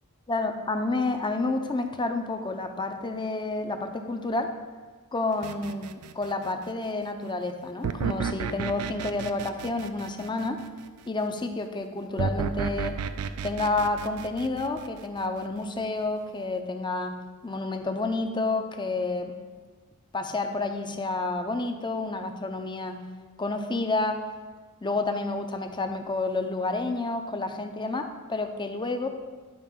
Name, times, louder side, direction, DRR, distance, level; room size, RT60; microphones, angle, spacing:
voice 1, 0.3-4.5 5.1-10.6 11.1-13.0 13.4-17.2 17.4-19.3 20.1-23.0 23.4-24.2 24.8-29.1, left 2 dB, 20° left, 6 dB, 0.6 m, -29 dB
sound 1, 5.4-6.6 7.8-10.9 12.2-15.4, right 6 dB, 85° right, 0.4 m, -33 dB
11.0 x 4.9 x 3.7 m, 1.4 s
head